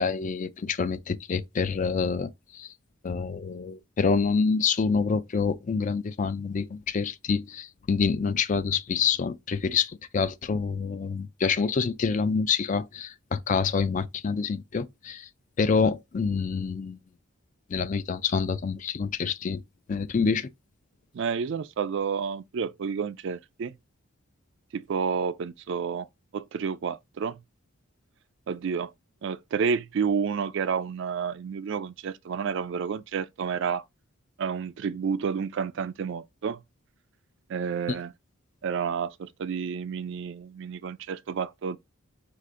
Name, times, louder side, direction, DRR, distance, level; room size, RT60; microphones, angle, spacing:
voice 1, 0.0-2.7 3.0-15.3 15.6-17.0 17.7-19.6 19.9-20.5, left 5 dB, 35° left, 0.4 m, -27 dB
voice 2, 21.1-23.8 24.7-26.1 26.3-27.4 28.5-28.9 29.2-33.8 34.4-36.6 37.5-38.1 38.6-41.8, right 6 dB, 60° right, 0.3 m, -30 dB
4.8 x 2.5 x 3.7 m
head